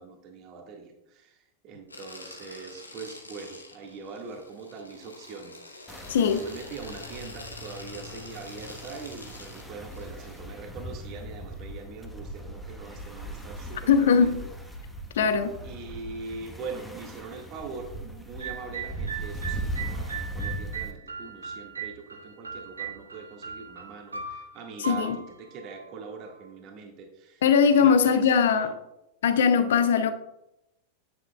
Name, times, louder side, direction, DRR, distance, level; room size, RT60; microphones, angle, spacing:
voice 1, 0.0-14.4 15.6-27.4 27.7-28.8, right 4 dB, 40° right, 2 dB, 1.8 m, -42 dB
sound 1, 1.9-10.4, left 2 dB, 80° left, 1.1 m, -46 dB
sound 2, 5.9-20.9, right 1 dB, ahead, 1.2 m, -39 dB
voice 2, 6.1-6.4 13.9-14.4 15.1-15.5 24.8-25.2 27.4-28.7 29.2-30.1, left 6 dB, 60° left, 10 dB, 0.8 m, -20 dB
sound 3, 18.4-26.4, right 6 dB, 80° right, 1.2 m, -39 dB
9.9 x 9.6 x 2.3 m, 0.85 s
figure-of-eight pair, 90°, 0 cm